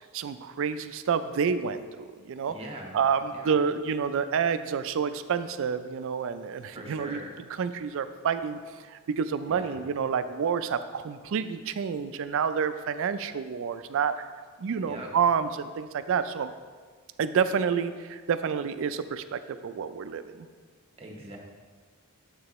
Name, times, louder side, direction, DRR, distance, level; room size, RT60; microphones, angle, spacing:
voice 1, 0.1-2.5 2.9-7.2 7.6-8.6 8.9-14.3 14.6-16.5 17.2-20.5, right 6 dB, 65° right, 11 dB, 0.4 m, -29 dB
voice 2, 2.5-3.0 3.3-3.5 6.7-7.3 9.5-9.8 14.9-15.1 21.0-21.4, right 2 dB, 30° right, 1 dB, 1.0 m, -41 dB
7.5 x 6.4 x 3.0 m, 1.5 s
head